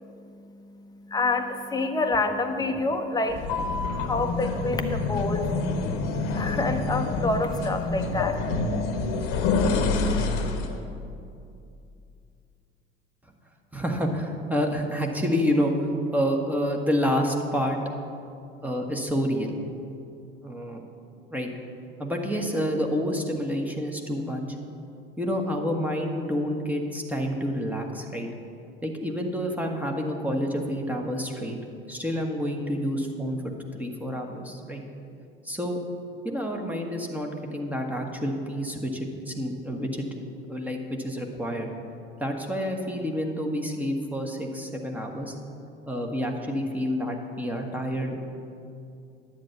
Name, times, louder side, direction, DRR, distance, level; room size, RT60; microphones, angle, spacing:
voice 1, 1.1-3.5 3.9-5.5 6.3-8.4, left 2 dB, 10° left, 5 dB, 0.9 m, -27 dB
sound 1, 3.3-10.8, left 3 dB, 55° left, 1.1 m, -27 dB
voice 2, 13.7-15.7 16.1-17.8 18.6-19.6 20.4-20.9 21.3-21.5 22.0-24.4 25.2-28.3 28.8-31.6 31.9-34.8 35.4-35.8 36.2-40.0 40.4-41.7 42.2-45.3 45.9-48.2, equal, 5° right, 1 dB, 1.4 m, -28 dB
10.5 x 8.4 x 5.8 m, 2.6 s
figure-of-eight pair, 65°, 30 cm